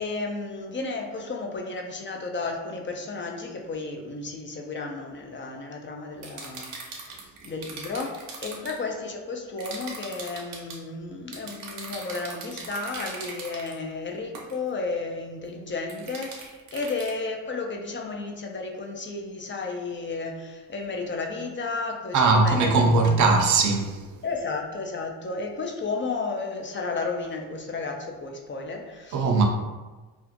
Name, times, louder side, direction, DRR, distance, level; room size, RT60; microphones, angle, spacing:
voice 1, 0.0-23.2 24.2-29.3, left 3 dB, 25° left, 0.4 m, -33 dB
sound 1, 6.2-8.8 9.6-10.8 11.3-13.8 14.3-14.6 15.9-17.1, right 4 dB, 75° right, 0.7 m, -39 dB
voice 2, 22.1-24.0 29.1-29.4, right 3 dB, 40° right, 0.5 m, -20 dB
2.5 x 2.0 x 2.6 m
hypercardioid pair, 45°, 49 cm